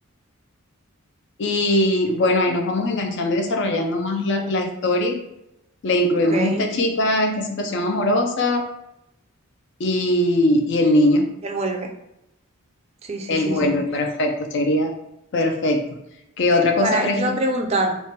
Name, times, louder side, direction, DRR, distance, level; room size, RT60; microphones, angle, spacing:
voice 1, 1.4-5.2 5.8-8.6 9.8-11.3 13.3-14.9 15.3-16.0 16.4-17.4, left 1 dB, 55° left, 4 dB, 0.4 m, -21 dB
voice 2, 6.3-6.7 11.4-11.9 13.0-13.7 16.8-18.0, right 2 dB, 30° right, 3 dB, 0.4 m, -24 dB
3.2 x 2.1 x 4.3 m, 0.84 s
head